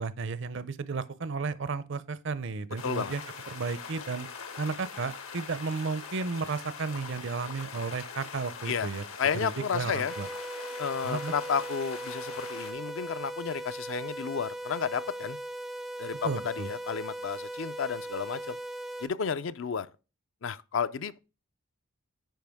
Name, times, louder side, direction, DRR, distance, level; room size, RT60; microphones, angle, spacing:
voice 1, 0.0-3.2 3.5-4.3 4.6-9.0 9.3-10.3 11.0-11.3 16.2-16.7, right 4 dB, 55° right, 0.5 m, -33 dB
sound 1, 2.8-12.7, left 5 dB, 80° left, 1.6 m, -43 dB
voice 2, 2.8-3.1 8.6-8.9 9.2-10.1 10.8-15.4 16.0-18.6 19.0-19.9 20.4-21.2, left 6 dB, 60° left, 0.4 m, -32 dB
sound 2, 10.1-19.1, right 1 dB, ahead, 0.4 m, -39 dB
9.1 x 5.1 x 3.5 m
head